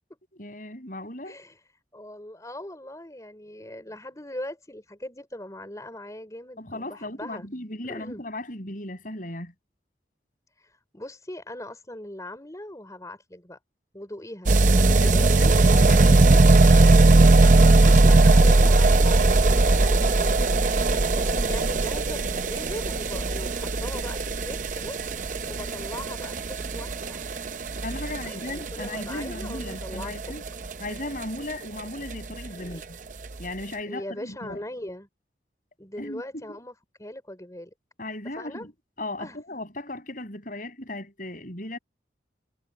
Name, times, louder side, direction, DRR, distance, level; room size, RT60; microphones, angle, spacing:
voice 1, 0.3-1.4 6.6-9.5 14.9-16.5 27.8-30.4 30.8-33.0 33.4-34.6 36.0-36.6 38.0-38.7 39.0-41.8, left 1 dB, 45° left, 7.2 m, -36 dB
voice 2, 1.2-1.6 1.9-7.5 7.8-8.2 10.6-13.6 13.9-15.4 17.7-25.0 25.5-27.3 28.0-30.2 32.5-32.8 33.9-35.1 35.8-36.7 37.0-37.7 38.3-38.7 39.2-39.4, left 1 dB, 20° left, 4.4 m, -40 dB
sound 1, 14.5-31.2 31.5-31.6 31.8-31.9 32.1-32.2 32.5-32.6 33.2-33.3, right 2 dB, 45° right, 0.7 m, -19 dB
head